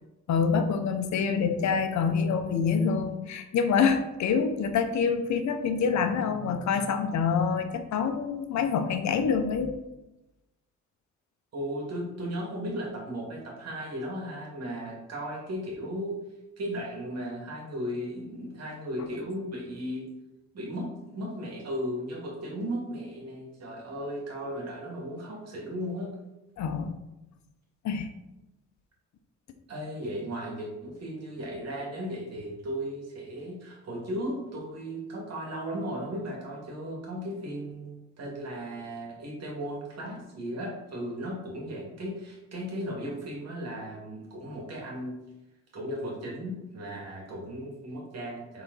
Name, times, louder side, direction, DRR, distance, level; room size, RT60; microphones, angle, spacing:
voice 1, 0.3-9.7 26.6-26.9 27.8-28.1, left 6 dB, 65° left, 7 dB, 0.9 m, -26 dB
voice 2, 11.5-16.2 16.6-20.1 20.5-26.1 29.7-45.2 45.7-48.6, equal, 55° right, -1 dB, 2.4 m, -36 dB
6.9 x 4.2 x 4.0 m, 0.96 s
cardioid pair, 90°, 30 cm